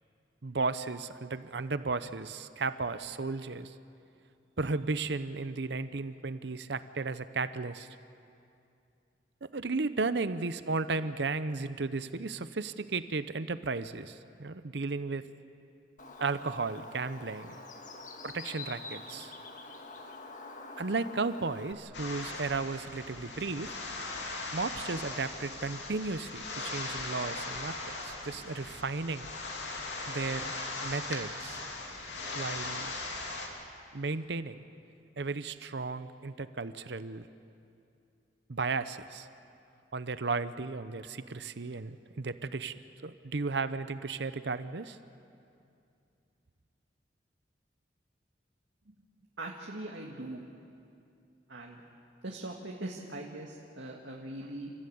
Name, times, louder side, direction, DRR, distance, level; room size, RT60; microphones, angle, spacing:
voice 1, 0.4-3.7 4.6-7.9 9.4-15.2 16.2-17.6 18.2-19.3 20.8-23.7 24.5-27.8 28.0-29.3 30.1-30.6 30.8-31.6 32.3-32.9 33.9-34.6 35.2-37.3 38.5-39.3 39.9-42.7 43.0-45.0, right 3 dB, 70° right, 13 dB, 0.8 m, -34 dB
Bird, 16.0-21.7, left 3 dB, 45° left, 1.6 m, -46 dB
sound 1, 21.9-33.5, left 2 dB, 75° left, 3.1 m, -39 dB
voice 2, 49.4-50.4 51.5-51.8 52.2-54.7, right 1 dB, 85° right, 0 dB, 1.8 m, -41 dB
29.5 x 14.5 x 8.7 m, 2.6 s
head